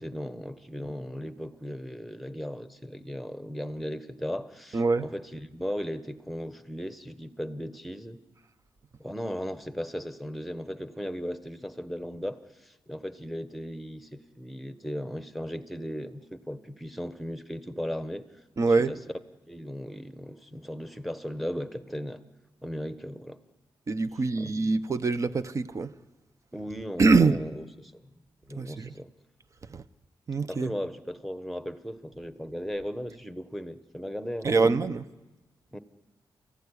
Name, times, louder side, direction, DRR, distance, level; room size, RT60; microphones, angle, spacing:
voice 1, 0.0-8.2 9.0-18.2 18.9-19.0 19.5-22.2 22.6-23.4 26.5-27.3 27.9-28.1 28.5-29.1 30.5-34.7 35.7-35.8, equal, ahead, 1.2 m, -36 dB
voice 2, 4.7-5.1 18.6-18.9 23.9-26.0 27.0-27.4 28.5-29.0 29.6-29.8 30.3-30.7 34.4-35.1, right 4 dB, 40° right, 1.0 m, -24 dB
29.0 x 15.5 x 9.9 m
wide cardioid pair, 130°, 8 cm